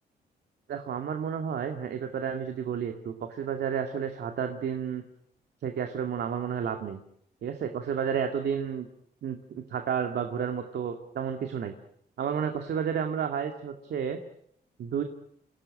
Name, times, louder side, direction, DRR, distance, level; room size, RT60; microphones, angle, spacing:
voice 1, 0.7-5.0 5.6-7.0 7.4-8.9 9.2-9.4 9.7-11.7 12.2-14.2 14.8-15.0, right 7 dB, 75° right, 5 dB, 2.2 m, -31 dB
28.5 x 18.0 x 8.8 m, 0.72 s
wide cardioid pair, 145°, 17 cm